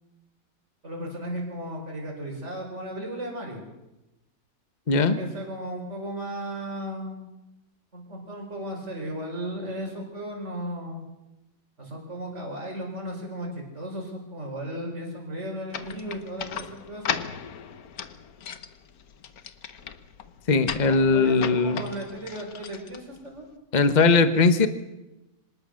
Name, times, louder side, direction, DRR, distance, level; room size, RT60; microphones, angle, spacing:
voice 1, 0.8-3.6 5.0-7.2 7.9-11.0 11.8-17.1 20.8-23.5, right 1 dB, 45° right, 0 dB, 5.2 m, -35 dB
sound 1, 15.7-23.5, left 7 dB, 70° left, 1.6 m, -37 dB
voice 2, 20.5-21.8 23.7-24.7, left 4 dB, 30° left, 10 dB, 1.2 m, -19 dB
25.5 x 19.5 x 6.5 m, 0.97 s
omnidirectional pair, 1.6 m